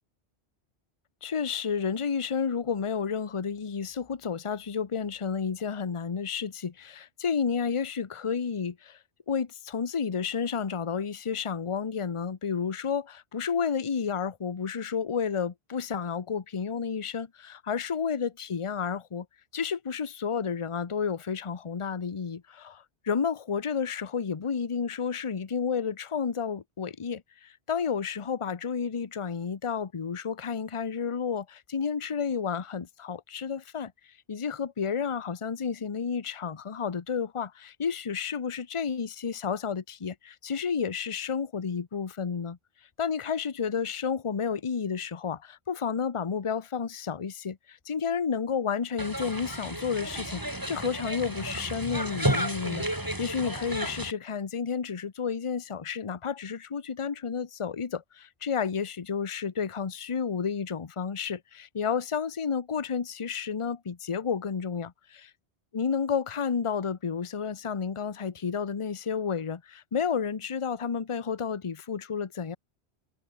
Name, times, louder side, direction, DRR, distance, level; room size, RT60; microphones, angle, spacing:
voice 1, 1.2-9.0 9.3-19.3 19.5-33.9 34.3-42.6 43.0-65.2 65.7-72.6, left 6 dB, 30° left, 0.8 m, -31 dB
sound 1, 49.0-54.1, right 1 dB, 15° right, 3.9 m, -32 dB
omnidirectional pair, 1.2 m